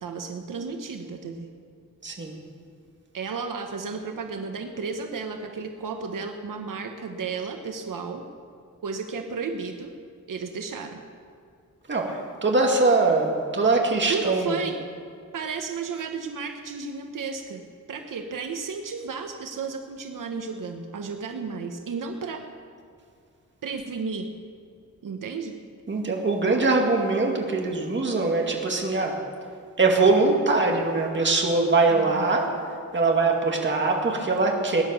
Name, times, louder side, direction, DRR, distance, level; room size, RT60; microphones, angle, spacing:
voice 1, 0.0-1.5 3.1-8.2 8.8-9.9 10.3-11.0 14.1-14.8 15.3-17.6 17.9-22.4 23.6-24.3 25.0-25.6 31.9-32.3, right 5 dB, 90° right, 5 dB, 1.1 m, -33 dB
voice 2, 2.0-2.3 11.9-14.5 25.9-29.2 29.8-32.5 32.9-34.8, right 3 dB, 35° right, 0 dB, 2.2 m, -22 dB
19.0 x 10.0 x 7.0 m, 2.4 s
wide cardioid pair, 165°, 31 cm